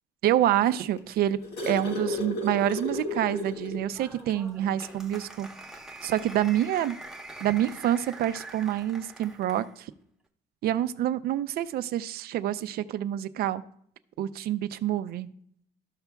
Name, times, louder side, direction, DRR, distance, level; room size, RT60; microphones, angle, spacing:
voice 1, 0.2-1.4 1.7-5.5 6.0-7.0 7.4-9.9 10.6-13.6 14.2-15.3, right 12 dB, 65° right, 13 dB, 0.5 m, -27 dB
sound 1, 1.0-3.9 4.3-4.4 4.8-5.0 6.1-6.2, left 2 dB, 70° left, 1.9 m, -33 dB
Applause, 3.9-9.7, right 2 dB, ahead, 1.0 m, -44 dB
13.5 x 5.7 x 2.3 m, 0.66 s
cardioid pair, 110°, 17 cm